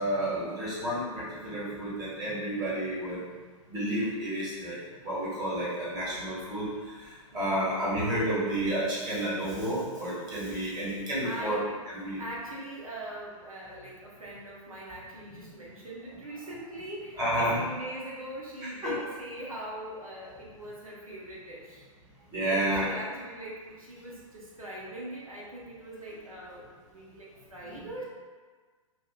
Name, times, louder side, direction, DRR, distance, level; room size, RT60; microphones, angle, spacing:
voice 1, 0.0-3.2 3.7-11.6 11.9-12.2 15.4-15.5 17.2-17.6 18.8-18.9 22.3-22.9 27.6-27.9, right 1 dB, 25° right, -8 dB, 1.3 m, -31 dB
voice 2, 7.3-7.6 11.2-11.8 12.2-21.9 22.5-28.0, right 1 dB, 80° right, -5 dB, 0.8 m, -41 dB
5.1 x 2.4 x 2.2 m, 1.5 s
figure-of-eight pair, 110°, 17 cm